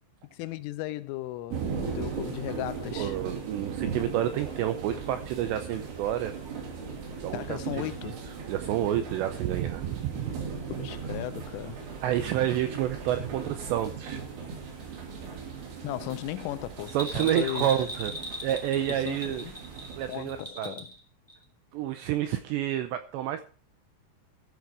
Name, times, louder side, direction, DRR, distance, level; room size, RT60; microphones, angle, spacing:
voice 1, 0.3-3.2 7.3-8.2 10.7-11.9 15.8-17.8 18.9-19.5 20.1-20.9, left 16 dB, 85° left, 3.2 m, -36 dB
sound 1, 1.5-20.5, right 5 dB, 70° right, 5.3 m, -38 dB
voice 2, 3.0-6.3 7.2-8.1 8.5-10.4 12.0-14.2 16.9-18.1 18.4-19.5 20.0-20.7 21.7-23.4, right 11 dB, 85° right, 2.5 m, -29 dB
Bell, 16.9-21.0 21.3-21.4, equal, 5° left, 2.4 m, -38 dB
13.5 x 9.3 x 4.7 m
omnidirectional pair, 5.8 m